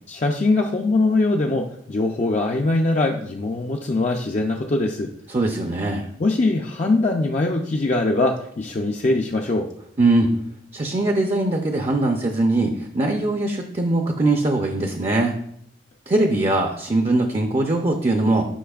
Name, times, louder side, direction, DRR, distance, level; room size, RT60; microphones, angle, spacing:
voice 1, 0.1-5.1 6.2-9.7, left 2 dB, 40° left, 1 dB, 0.4 m, -22 dB
voice 2, 5.3-6.0 10.0-10.3 10.7-15.3 16.1-18.5, right 2 dB, 30° right, 3 dB, 0.5 m, -21 dB
10.0 x 5.6 x 2.4 m, 0.69 s
head